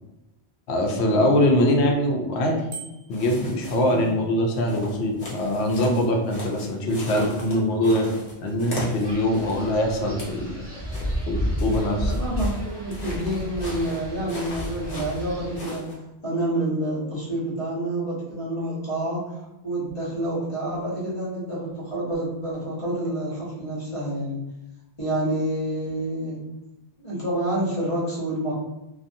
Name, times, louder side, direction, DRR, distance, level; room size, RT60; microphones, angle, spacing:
voice 1, 0.7-2.6 3.1-10.6 11.3-12.2, left 1 dB, 80° left, 2 dB, 0.9 m, -23 dB
Bicycle bell, 2.7-3.3, right 7 dB, 65° right, 0.9 m, -39 dB
sound 1, 3.1-4.1 4.5-9.7 10.0-10.4 10.9-15.9, left 1 dB, 60° left, 1.0 m, -38 dB
voice 2, 3.8-4.1 12.0-15.8 16.2-24.4 25.0-26.4 27.0-28.5, right 1 dB, 30° left, -6 dB, 1.0 m, -28 dB
Wind, 9.0-15.6, equal, 30° right, 0.6 m, -31 dB
2.6 x 2.4 x 2.5 m, 0.97 s
omnidirectional pair, 1.1 m